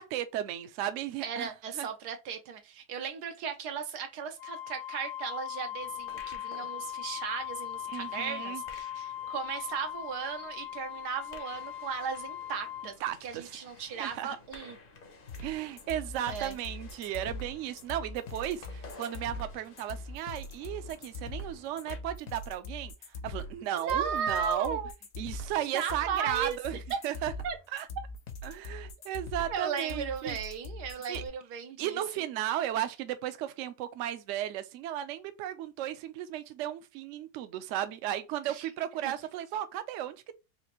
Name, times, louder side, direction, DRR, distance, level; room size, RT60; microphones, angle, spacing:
voice 1, 0.0-1.5 1.7-1.9 7.9-8.6 13.0-13.5 14.0-14.4 15.4-22.9 23.2-24.8 25.2-26.8 27.0-27.3 27.7-27.9 28.4-30.4 31.1-31.2 31.8-40.3, right 12 dB, 70° right, 0.7 m, -35 dB
voice 2, 1.2-12.9 13.2-14.8 16.3-16.6 23.7-24.9 25.6-26.6 26.9-27.0 27.4-27.6 29.5-32.0 38.4-38.7 39.0-39.1, right 7 dB, 90° right, 1.3 m, -36 dB
Wind instrument woodwind instrument, 4.4-12.9, left 11 dB, 85° left, 1.2 m, -39 dB
sound 1, 5.8-22.0, left 3 dB, 50° left, 0.7 m, -54 dB
sound 2, 15.3-31.3, left 2 dB, 65° left, 1.1 m, -41 dB
4.1 x 2.5 x 2.9 m
omnidirectional pair, 1.7 m